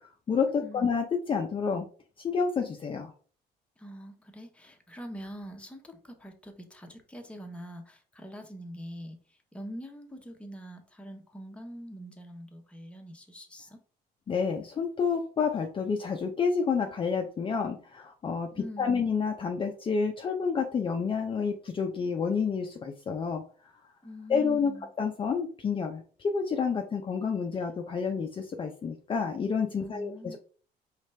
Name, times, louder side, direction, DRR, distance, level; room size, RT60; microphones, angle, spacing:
voice 1, 0.3-1.9 2.2-3.1 14.3-23.4 24.3-24.7 25.0-30.4, left 5 dB, 30° left, 3 dB, 0.6 m, -29 dB
voice 2, 3.8-13.8 18.5-19.1 24.0-24.9 29.8-30.4, equal, 5° left, 3 dB, 0.9 m, -44 dB
4.9 x 3.3 x 3.3 m, 0.42 s
cardioid pair, 110°, 17 cm